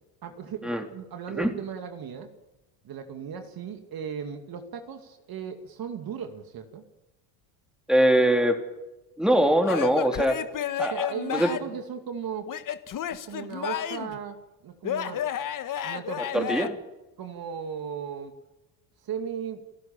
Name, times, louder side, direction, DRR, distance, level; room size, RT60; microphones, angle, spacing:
voice 1, 0.2-2.3 2.8-6.8 10.9-12.5 13.1-14.4 14.6-15.2 15.8-16.7 17.2-18.3 19.0-19.6, right 7 dB, 50° right, 6 dB, 2.5 m, -36 dB
voice 2, 7.9-8.6 9.2-10.4 10.8-11.5 16.3-16.7, right 1 dB, ahead, 4 dB, 3.5 m, -22 dB
Male speech man speaking / Yell / Laughter, 9.6-11.8 12.5-14.2 14.8-16.7, left 10 dB, 40° left, 1.5 m, -31 dB
29.5 x 13.0 x 7.2 m, 1.0 s
supercardioid pair, 95°, 47 cm